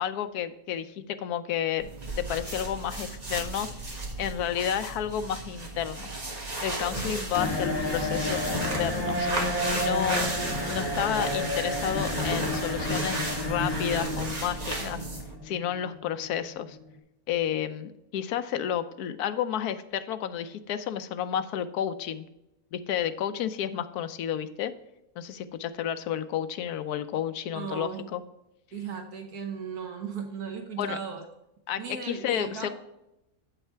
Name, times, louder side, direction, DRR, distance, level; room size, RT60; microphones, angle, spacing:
voice 1, 0.0-1.9 2.2-3.7 4.2-6.1 6.6-9.3 9.8-10.3 10.7-15.0 15.4-16.8 17.3-22.3 22.7-24.7 25.2-28.2 30.8-31.0 31.7-32.7, left 9 dB, 85° left, 11 dB, 1.2 m, -31 dB
sound 1, 1.8-15.4, right 2 dB, 30° right, 1.4 m, -34 dB
sound 2, 7.3-16.9, left 1 dB, 15° left, 1.5 m, -31 dB
voice 2, 27.5-28.1 28.7-31.2 31.8-32.7, right 6 dB, 80° right, 4 dB, 1.5 m, -36 dB
8.3 x 5.6 x 4.5 m, 0.89 s
omnidirectional pair, 1.6 m